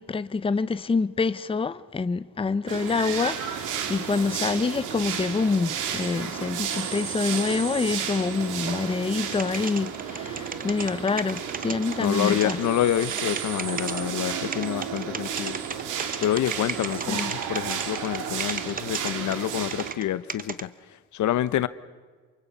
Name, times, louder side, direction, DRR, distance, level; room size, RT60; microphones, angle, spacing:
voice 1, 0.0-12.6 17.1-17.3, left 4 dB, 20° left, 0.7 m, -26 dB
sound 1, 2.7-19.9, right 8 dB, 85° right, 2.3 m, -32 dB
sound 2, 9.2-12.5 13.0-14.0 14.5-20.0 20.3-20.6, right 5 dB, 30° right, 1.0 m, -34 dB
voice 2, 11.9-15.6 16.2-20.7 21.1-21.7, left 12 dB, 70° left, 0.9 m, -27 dB
28.0 x 24.5 x 5.4 m
cardioid pair, 90°, 30 cm